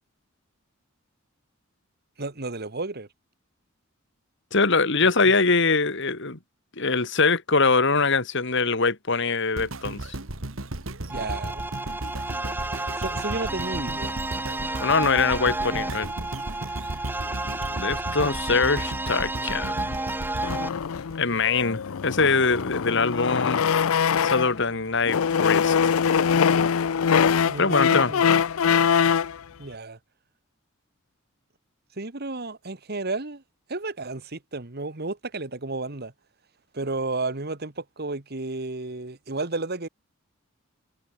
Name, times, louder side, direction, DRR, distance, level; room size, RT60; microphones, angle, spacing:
voice 1, 2.2-3.1 5.0-5.1 11.1-11.7 13.0-14.2 27.5-28.4 29.6-30.0 32.0-33.4 33.7-36.1 36.7-39.9, right 3 dB, 50° right, 1.7 m, -32 dB
voice 2, 4.5-6.4 6.8-10.2 14.8-16.1 17.4-20.0 21.1-23.6 24.2-25.9 27.6-28.1, left 4 dB, 60° left, 2.6 m, -23 dB
sound 1, 9.6-21.8 22.3-22.4, right 1 dB, 75° right, 2.3 m, -35 dB
sound 2, 11.1-20.7, right 2 dB, 10° right, 1.1 m, -31 dB
Silla siendo arrastrada, 20.4-24.6 25.0-29.4, left 7 dB, 85° left, 0.5 m, -23 dB
head